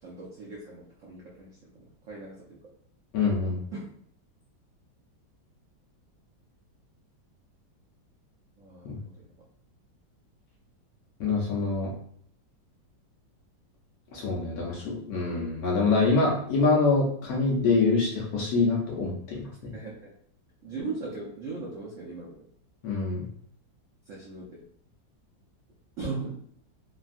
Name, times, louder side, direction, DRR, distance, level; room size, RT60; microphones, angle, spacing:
voice 1, 0.0-2.6 3.7-3.8 8.6-9.3 19.7-20.1 20.6-22.5 24.1-24.6 26.0-26.3, right 3 dB, 75° right, -4 dB, 0.7 m, -38 dB
voice 2, 3.1-3.6 8.8-9.0 11.2-11.9 14.1-19.7 22.8-23.3, left 3 dB, 65° left, -3 dB, 1.0 m, -25 dB
3.2 x 2.3 x 2.5 m, 0.64 s
omnidirectional pair, 2.0 m